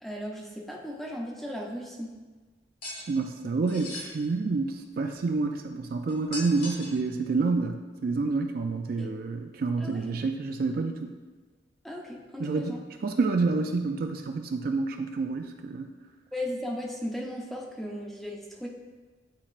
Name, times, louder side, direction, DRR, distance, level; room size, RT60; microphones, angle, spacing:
voice 1, 0.0-2.2 9.0-9.1 9.8-10.2 11.8-12.8 16.3-18.7, equal, ahead, -1 dB, 0.7 m, -36 dB
sound 1, 2.8-3.1 3.7-4.1 6.1-7.0, left 1 dB, 50° left, 1.7 m, -38 dB
voice 2, 3.1-11.2 12.4-15.9, right 3 dB, 55° right, 5 dB, 0.4 m, -28 dB
8.9 x 4.2 x 2.5 m, 1.3 s
head